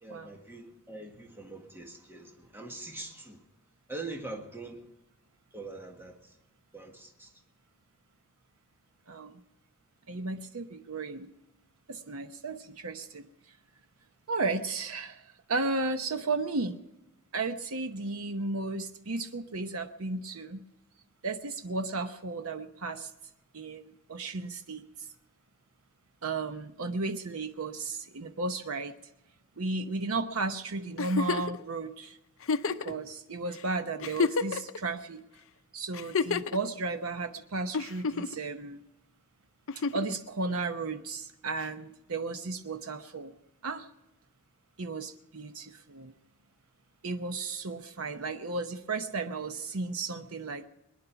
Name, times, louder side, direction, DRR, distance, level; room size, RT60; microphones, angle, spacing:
voice 1, 0.0-3.4 3.9-4.8 5.5-6.2 6.7-7.3, right 2 dB, 10° right, 1 dB, 1.6 m, -43 dB
voice 2, 9.1-9.4 10.1-11.3 11.9-13.2 14.3-15.2 15.5-16.8 17.3-20.6 21.2-23.1 23.5-25.1 26.2-28.9 29.6-32.2 32.7-35.2 35.7-38.8 39.9-43.3 43.6-43.9 44.8-46.1 47.0-50.7, right 3 dB, 85° right, 7 dB, 0.9 m, -34 dB
Giggle, 31.0-31.6 32.4-32.9 33.6-33.7 34.0-34.8 35.9-36.6 37.7-38.4 39.7-40.1 41.6-41.7, left 5 dB, 65° left, 0.6 m, -29 dB
21.0 x 10.5 x 5.8 m, 0.93 s
head